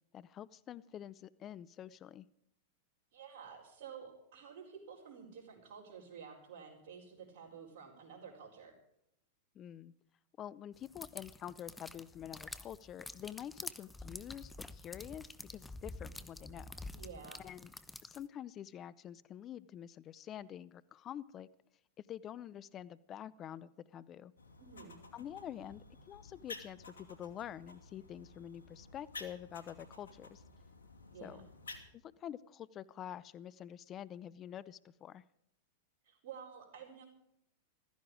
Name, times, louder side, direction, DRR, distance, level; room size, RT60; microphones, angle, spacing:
voice 1, 0.1-2.3 9.6-9.9 10.4-16.8 17.4-17.7 18.0-21.5 22.1-24.3 25.1-30.4 31.2-31.5 31.9-35.2, left 10 dB, 35° left, 20 dB, 0.6 m, -47 dB
voice 2, 3.1-8.7 16.9-17.4 24.6-25.0 31.1-31.5 36.0-37.0, right 6 dB, 60° right, -6 dB, 4.8 m, -51 dB
sound 1, 10.8-18.3, left 2 dB, 10° left, 0.9 m, -48 dB
sound 2, 24.4-31.9, left 3 dB, 90° left, 2.4 m, -53 dB
15.5 x 14.5 x 4.9 m, 0.77 s
hypercardioid pair, 105°, 0 cm